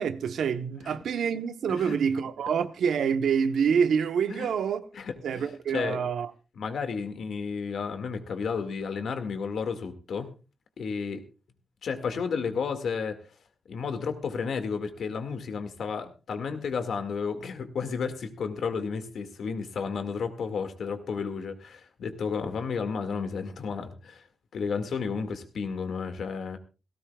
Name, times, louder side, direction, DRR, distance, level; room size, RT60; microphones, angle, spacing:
voice 1, 0.0-4.9 5.2-6.3, right 7 dB, 85° right, 1.0 m, -27 dB
voice 2, 5.0-5.5 5.7-6.0 6.6-10.3 10.8-11.2 11.8-13.2 13.7-24.2 24.5-26.6, left 5 dB, 65° left, 2.0 m, -32 dB
18.0 x 17.0 x 2.4 m
wide cardioid pair, 170°, 0 cm